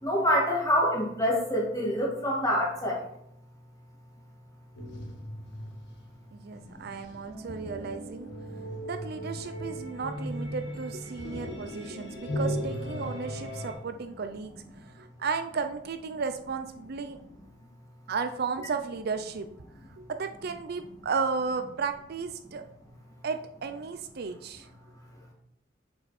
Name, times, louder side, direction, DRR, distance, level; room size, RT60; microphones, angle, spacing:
voice 1, 0.0-3.0 9.6-9.7 12.3-12.4, equal, 20° left, -2 dB, 2.2 m, -26 dB
sound 1, 4.8-13.7, equal, 60° left, 1.7 m, -37 dB
voice 2, 6.3-8.3 8.8-14.5 14.8-17.2 18.1-19.5 20.0-22.6 23.2-24.7, right 5 dB, 55° right, 8 dB, 0.5 m, -34 dB
7.3 x 5.6 x 4.3 m, 0.73 s
head